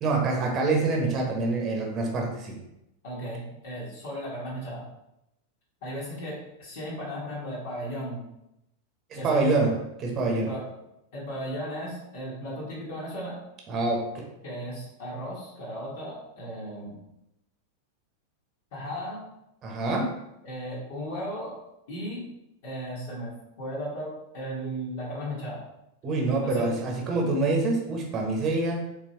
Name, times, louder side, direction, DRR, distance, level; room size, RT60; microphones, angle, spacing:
voice 1, 0.0-2.6 9.1-10.5 13.7-14.0 19.6-20.1 26.0-28.8, right 3 dB, 30° right, 1 dB, 1.1 m, -26 dB
voice 2, 3.0-4.8 5.8-8.2 9.2-9.7 10.3-10.6 11.1-13.4 14.4-17.0 18.7-19.2 20.4-21.5 21.9-22.2 22.6-25.6 26.4-26.7, equal, 50° left, -6 dB, 1.7 m, -36 dB
4.6 x 3.4 x 3.2 m, 0.86 s
figure-of-eight pair, 90°, 0 cm